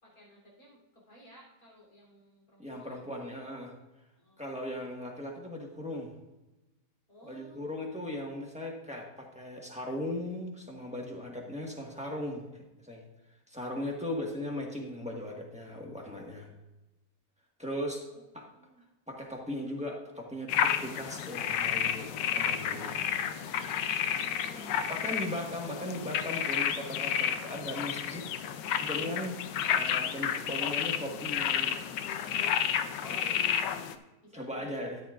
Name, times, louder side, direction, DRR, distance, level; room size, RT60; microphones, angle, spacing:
voice 1, 0.0-3.1 4.2-4.5 7.1-7.9 18.1-18.2 18.5-18.8 23.9-25.2 33.0-33.9 34.2-34.9, equal, 55° left, -4 dB, 4.1 m, -54 dB
voice 2, 2.6-3.7 4.4-6.1 7.2-13.0 13.5-16.5 17.6-18.5 19.1-23.0 24.9-28.3 28.8-29.4 29.7-31.7 34.3-35.0, left 1 dB, 5° right, -1 dB, 1.4 m, -38 dB
sound 1, 20.5-33.9, left 9 dB, 85° left, 1.3 m, -31 dB
13.0 x 10.0 x 2.5 m, 1.0 s
omnidirectional pair, 1.8 m